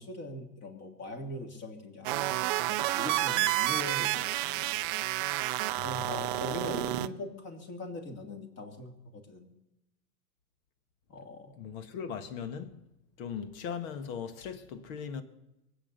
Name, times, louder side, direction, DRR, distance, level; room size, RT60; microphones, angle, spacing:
voice 1, 0.0-4.7 5.8-9.5 11.1-11.6, left 1 dB, 30° left, 3.0 m, -41 dB
sound 1, 2.0-7.1, right 17 dB, 35° right, 0.5 m, -30 dB
voice 2, 5.8-6.4 11.6-12.8 13.2-15.2, left 7 dB, 55° left, 1.8 m, -39 dB
23.0 x 8.7 x 6.9 m
hypercardioid pair, 120°, 49 cm